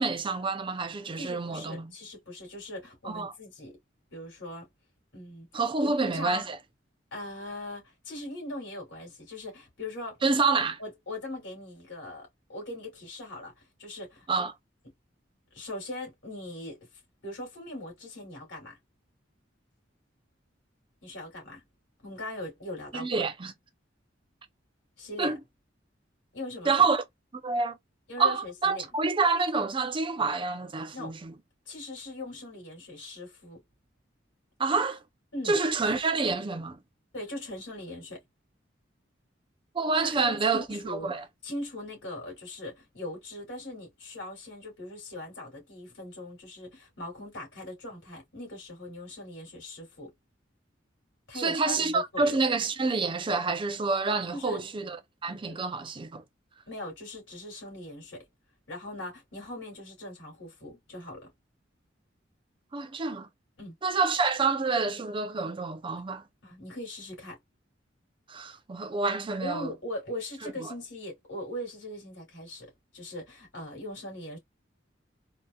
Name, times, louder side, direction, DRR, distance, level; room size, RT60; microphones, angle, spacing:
voice 1, 0.0-1.9 3.0-3.3 5.5-6.6 10.2-10.7 14.3-14.5 22.9-23.5 25.2-25.4 26.6-27.0 27.3-27.8 28.2-31.3 34.6-35.0 35.5-36.8 39.7-41.2 51.3-55.0 55.2-56.2 62.7-63.3 63.8-66.2 68.3-69.7 70.4-70.7, right 4 dB, 25° right, 0.5 m, -28 dB
voice 2, 1.2-3.8 4.1-4.7 5.1-5.5 5.8-6.5 7.1-10.2 10.8-14.3 15.5-16.9 17.2-18.8 21.0-21.6 22.0-23.2 25.0-25.3 26.3-26.8 28.1-28.9 30.9-31.1 31.7-33.6 35.3-35.6 37.1-38.2 40.0-41.1 41.4-50.1 51.3-52.4 54.3-54.6 55.4-55.6 56.7-58.2 58.7-61.3 63.6-63.8 66.4-67.4 69.4-74.4, left 1 dB, 75° left, 2.5 m, -40 dB
4.1 x 2.0 x 2.2 m
head